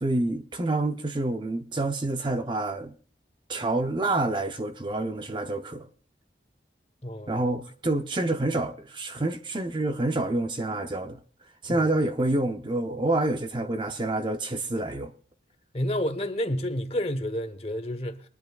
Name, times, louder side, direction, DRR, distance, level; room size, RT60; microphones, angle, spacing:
voice 1, 0.0-2.9 3.5-5.9 7.3-11.2 11.6-15.1, right 2 dB, 25° right, 0.6 m, -27 dB
voice 2, 7.0-7.3 11.7-11.8 15.7-18.2, left 1 dB, 30° left, 1.0 m, -29 dB
23.0 x 10.5 x 2.4 m
head